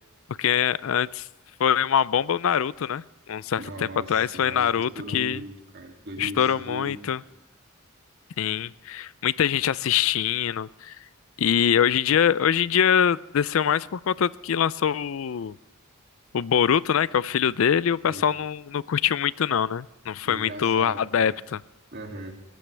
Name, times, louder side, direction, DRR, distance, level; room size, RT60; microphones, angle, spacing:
voice 1, 0.4-1.3 1.6-5.4 6.2-7.2 8.4-11.0 11.4-15.6 16.3-21.6, left 8 dB, 65° left, 19 dB, 0.4 m, -24 dB
voice 2, 3.6-7.2 18.1-18.2 20.2-21.4 21.9-22.3, right 1 dB, 50° right, 2 dB, 2.6 m, -39 dB
20.5 x 15.0 x 3.4 m, 0.98 s
head